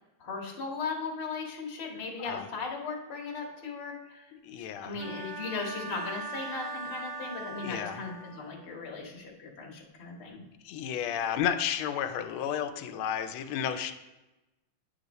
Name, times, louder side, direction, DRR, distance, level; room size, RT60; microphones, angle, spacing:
voice 1, 0.2-4.3 4.6-10.4, left 4 dB, 40° left, -2 dB, 1.0 m, -37 dB
voice 2, 4.4-5.0 7.6-8.0 10.6-13.9, left 9 dB, 80° left, 8 dB, 1.4 m, -32 dB
Bowed string instrument, 5.0-8.7, right 3 dB, 80° right, 1.8 m, -40 dB
8.8 x 3.4 x 4.0 m, 1.0 s
omnidirectional pair, 2.3 m